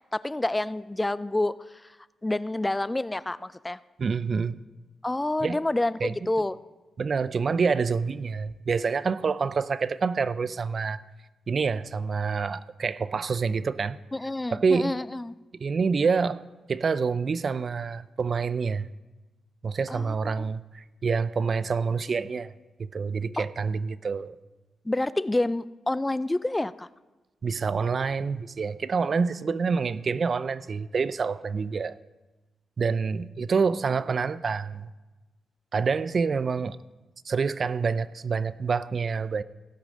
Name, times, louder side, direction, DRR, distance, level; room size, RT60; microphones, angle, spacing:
voice 1, 0.1-2.0 2.2-3.8 5.0-6.6 14.1-15.3 19.9-20.3 23.4-23.5 24.8-26.9, left 2 dB, 15° left, 0.3 m, -28 dB
voice 2, 4.0-4.6 5.4-5.6 6.0-6.1 7.0-11.0 11.5-14.0 14.5-14.9 15.6-16.4 16.7-18.9 19.6-22.5 22.8-24.4 27.4-32.0 32.8-34.9 35.7-36.8 37.3-39.4, right 5 dB, 50° right, 0.4 m, -27 dB
17.0 x 7.4 x 5.2 m
cardioid pair, 75°, 0 cm